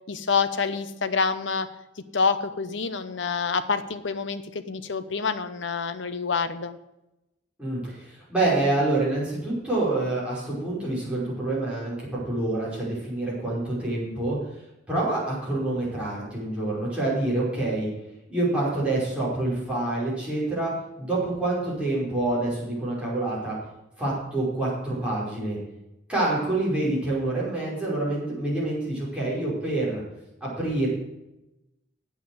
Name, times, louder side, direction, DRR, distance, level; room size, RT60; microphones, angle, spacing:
voice 1, 0.1-1.7 2.1-6.8, left 5 dB, 70° left, 11 dB, 0.9 m, -27 dB
voice 2, 7.6-14.4 14.9-17.9 18.3-20.7 21.0-23.6 24.0-25.6 26.1-30.0 30.4-30.9, right 2 dB, 5° right, -7 dB, 5.4 m, -27 dB
9.0 x 8.0 x 7.9 m, 0.92 s
head